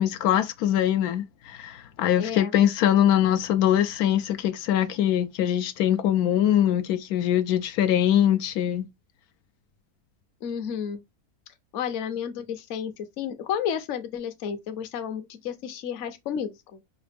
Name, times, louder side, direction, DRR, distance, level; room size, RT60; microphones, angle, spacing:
voice 1, 0.0-8.9, left 11 dB, 85° left, 1.1 m, -23 dB
voice 2, 2.2-2.5 10.4-11.0 11.7-16.8, left 8 dB, 60° left, 1.0 m, -32 dB
5.7 x 2.5 x 3.4 m
omnidirectional pair, 1.6 m